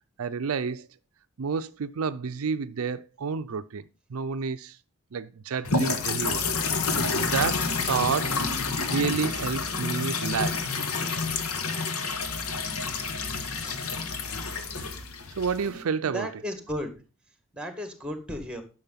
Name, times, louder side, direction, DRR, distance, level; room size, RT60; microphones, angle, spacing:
voice 1, 0.2-0.9 1.4-4.8 5.1-6.5 6.9-8.4 8.9-10.8 15.4-16.3, right 5 dB, 75° right, 0.5 m, -30 dB
sound 1, 5.6-15.8, left 4 dB, 85° left, 1.5 m, -29 dB
voice 2, 16.1-17.0 17.5-18.6, equal, 5° right, 2.0 m, -34 dB
10.5 x 6.5 x 5.7 m
head